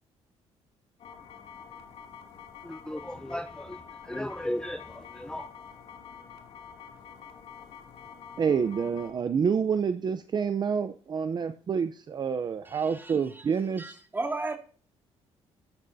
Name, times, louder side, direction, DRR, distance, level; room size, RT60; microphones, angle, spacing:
sound 1, 1.0-9.1, left 7 dB, 60° left, 2.8 m, -47 dB
voice 1, 2.6-5.5, left 1 dB, 5° left, 0.8 m, -36 dB
voice 2, 8.4-14.0, right 6 dB, 40° right, 0.7 m, -28 dB
voice 3, 12.7-13.4 13.8-14.6, right 3 dB, 20° right, 2.4 m, -35 dB
13.5 x 13.0 x 2.8 m
cardioid pair, 115°, 12 cm